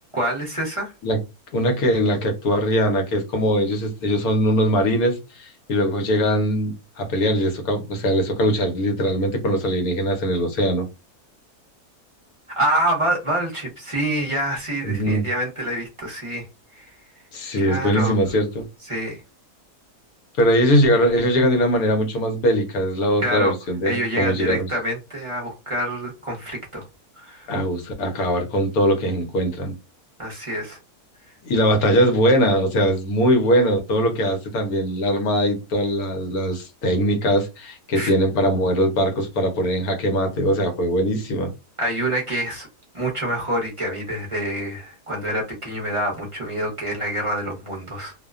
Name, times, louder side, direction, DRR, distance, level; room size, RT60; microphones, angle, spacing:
voice 1, 0.1-0.9 12.6-16.4 16.7-16.9 17.6-18.2 18.9-19.2 23.2-23.5 23.8-26.9 27.2-27.5 30.2-30.8 37.9-38.1 41.8-42.7 42.9-48.1, right 1 dB, 30° right, 0.6 m, -26 dB
voice 2, 1.5-10.9 14.8-15.3 17.3-18.6 20.4-24.7 27.5-29.7 31.4-41.5, equal, 70° left, 1.2 m, -21 dB
2.7 x 2.1 x 2.3 m
omnidirectional pair, 1.6 m